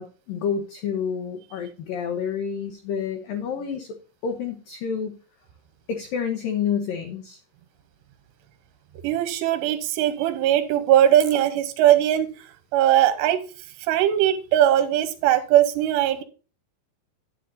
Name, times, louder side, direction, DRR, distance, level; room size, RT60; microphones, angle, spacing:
voice 1, 0.0-4.0 4.2-5.2 5.9-7.4, left 7 dB, 80° left, 6 dB, 2.0 m, -29 dB
voice 2, 9.0-13.4 13.8-16.2, right 11 dB, 80° right, 9 dB, 2.7 m, -20 dB
12.0 x 9.3 x 2.6 m, 0.35 s
omnidirectional pair, 5.6 m